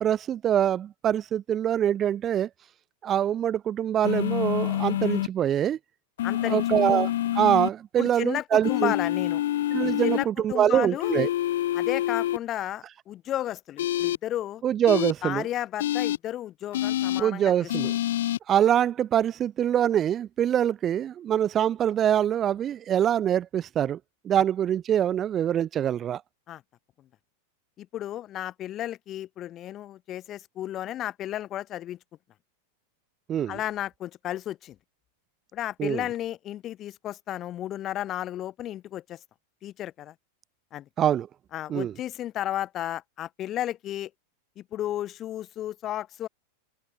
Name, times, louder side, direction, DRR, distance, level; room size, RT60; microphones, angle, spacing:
voice 1, 0.0-2.5 3.0-5.8 6.5-8.9 9.7-11.3 14.6-15.4 17.2-17.9 18.5-24.0 24.2-26.2 33.3-33.6 35.8-36.0 41.0-41.3 41.7-41.9, right 10 dB, 25° right, 0.5 m, -24 dB
sound 1, 4.0-5.3 6.2-7.7 8.6-10.2 11.0-12.4 13.8-14.2 14.9-15.1 15.8-16.2 16.7-17.2 17.7-18.4, left 13 dB, 60° left, 0.5 m, -27 dB
voice 2, 6.2-6.6 8.0-9.4 10.0-11.1 11.7-14.6 15.2-17.7 26.5-26.6 27.8-32.0 33.5-34.8 35.5-39.2 39.6-40.1 40.7-40.9 41.5-44.1 44.6-46.3, left 12 dB, 30° left, 3.8 m, -33 dB
figure-of-eight pair, 90°, 0 cm